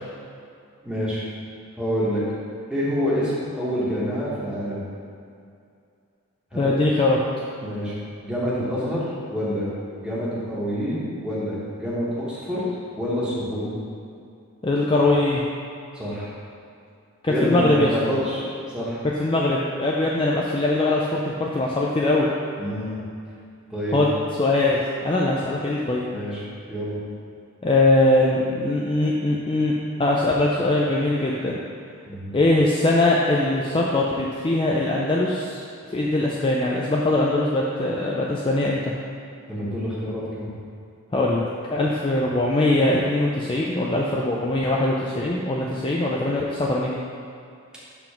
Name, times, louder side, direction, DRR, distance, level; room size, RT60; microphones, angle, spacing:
voice 1, 0.8-1.2 1.8-2.2 2.7-4.8 6.5-6.7 7.6-7.9 8.2-9.7 10.0-12.6 13.0-13.7 15.9-16.3 17.3-18.4 18.7-19.0 22.6-23.0 23.7-24.0 26.1-26.4 26.7-27.0 32.1-32.3 39.5-40.5, equal, 5° right, -8 dB, 1.4 m, -27 dB
voice 2, 6.5-7.2 14.6-15.4 17.2-17.9 19.2-22.3 23.9-24.1 24.4-26.1 27.6-29.7 30.0-31.6 32.3-35.6 35.9-38.9 41.1-47.0, left 2 dB, 25° left, -3 dB, 0.4 m, -21 dB
6.8 x 3.9 x 5.8 m, 2.5 s
head